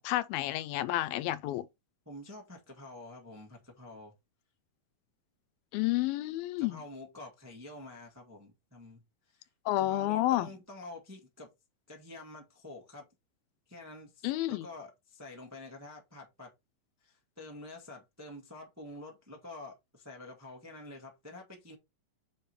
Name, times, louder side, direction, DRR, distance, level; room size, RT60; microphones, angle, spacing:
voice 1, 0.0-1.7 5.7-6.8 9.7-10.5 14.2-14.7, left 15 dB, 85° left, 2.4 m, -30 dB
voice 2, 2.0-4.1 6.6-9.5 9.8-11.5 11.9-13.1 13.7-16.5 17.0-21.7, left 2 dB, 25° right, 0.3 m, -48 dB
7.4 x 3.3 x 4.3 m
omnidirectional pair, 4.2 m